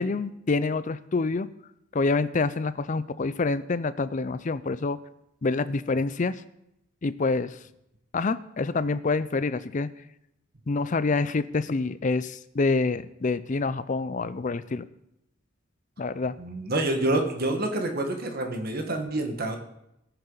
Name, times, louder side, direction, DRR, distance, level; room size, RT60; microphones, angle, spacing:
voice 1, 0.0-1.5 1.9-5.0 5.4-6.4 7.0-7.6 8.1-9.9 10.7-14.9 16.0-16.3, left 3 dB, 40° left, 15 dB, 0.5 m, -27 dB
voice 2, 16.4-19.6, right 2 dB, 50° right, 4 dB, 1.4 m, -27 dB
19.0 x 6.8 x 3.9 m, 0.82 s
head